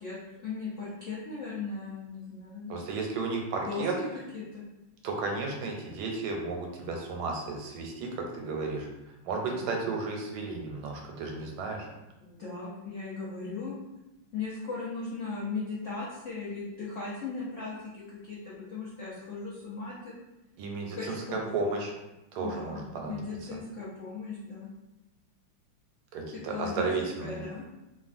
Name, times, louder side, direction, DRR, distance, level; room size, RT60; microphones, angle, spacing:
voice 1, 0.0-2.8 3.6-3.8 4.3-4.6 9.4-9.9 12.2-13.8 14.3-20.1 20.9-21.5 22.4-24.7 26.5-26.9 27.2-27.6, left 4 dB, 85° left, -8 dB, 0.6 m, -38 dB
voice 2, 2.7-3.9 5.0-8.9 9.2-11.9 20.6-21.9 22.3-23.2 26.1-27.4, right 3 dB, 85° right, 1 dB, 1.4 m, -33 dB
3.4 x 2.2 x 2.5 m, 0.97 s
omnidirectional pair, 2.2 m